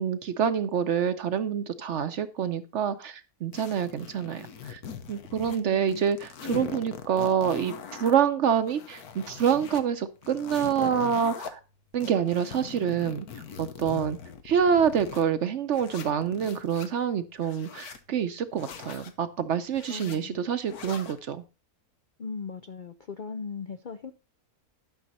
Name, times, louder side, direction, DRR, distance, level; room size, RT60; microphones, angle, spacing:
voice 1, 0.0-4.8 5.1-11.6 11.9-13.3 13.6-14.2 14.4-21.4, right 8 dB, 60° right, 0.9 m, -27 dB
sound 1, 3.5-5.6 5.9-8.2 8.6-9.8 10.2-11.5 12.0-15.2 15.7-16.9 17.4-18.0 18.6-19.1 19.7-20.2 20.7-21.2, left 7 dB, 80° left, 1.5 m, -41 dB
voice 2, 5.3-6.1 19.9-20.4 22.2-24.1, left 5 dB, 55° left, 0.5 m, -38 dB
11.5 x 6.4 x 4.1 m
omnidirectional pair, 1.6 m